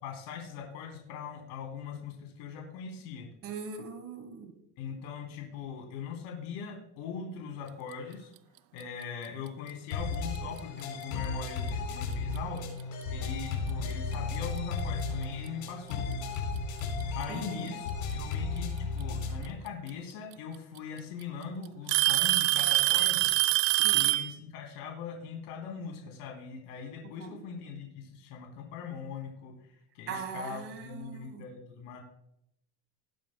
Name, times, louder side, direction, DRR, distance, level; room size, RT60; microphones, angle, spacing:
voice 1, 0.0-3.3 4.8-8.3 8.7-12.7 13.1-16.0 17.1-23.3 23.9-32.0, left 6 dB, 60° left, 1 dB, 3.3 m, -41 dB
voice 2, 3.4-4.5 17.3-17.7 23.8-24.0 27.2-27.4 30.1-31.5, right 5 dB, 30° right, 8 dB, 1.3 m, -40 dB
sound 1, 9.9-19.5, left 4 dB, 75° left, 4.5 m, -34 dB
Alarm / Tick-tock, 10.4-10.6 11.5-11.6 12.4-12.5 14.1-14.2 15.5-15.6 16.8-17.2 19.0-19.1 20.3-20.4 20.8-21.2 21.9-24.3, right 20 dB, 85° right, 0.6 m, -25 dB
19.5 x 8.6 x 2.2 m, 0.78 s
cardioid pair, 165°, 42 cm